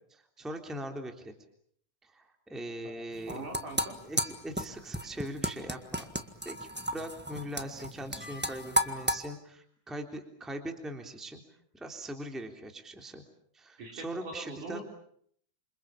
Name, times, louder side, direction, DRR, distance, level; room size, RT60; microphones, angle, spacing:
voice 1, 0.1-1.3 2.0-3.5 4.0-6.0 6.4-11.4 11.7-13.2 13.5-14.8, right 1 dB, ahead, 4 dB, 2.9 m, -41 dB
voice 2, 2.8-4.0 13.8-14.8, right 2 dB, 75° right, 2 dB, 7.0 m, -42 dB
sound 1, 3.1-9.2, equal, 15° right, 0.3 m, -33 dB
28.5 x 26.5 x 7.4 m, 0.65 s
omnidirectional pair, 3.6 m